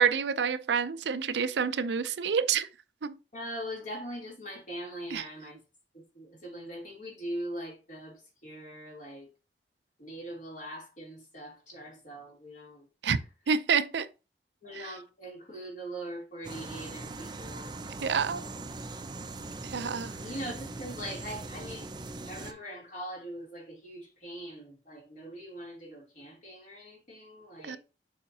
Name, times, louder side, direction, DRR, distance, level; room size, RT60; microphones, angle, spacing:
voice 1, 0.0-2.7 3.0-3.2 5.1-5.2 13.0-13.2 13.5-14.1 14.7-14.9 18.0-18.4 19.6-20.1 27.6-27.8, right 6 dB, 75° right, 0.5 m, -28 dB
voice 2, 3.3-5.6 5.9-9.3 10.0-13.1 14.6-17.9 20.2-21.9 22.2-27.8, equal, 45° left, 3.1 m, -41 dB
sound 1, 16.4-22.5, right 2 dB, 25° right, 0.6 m, -41 dB
7.0 x 5.0 x 2.8 m
head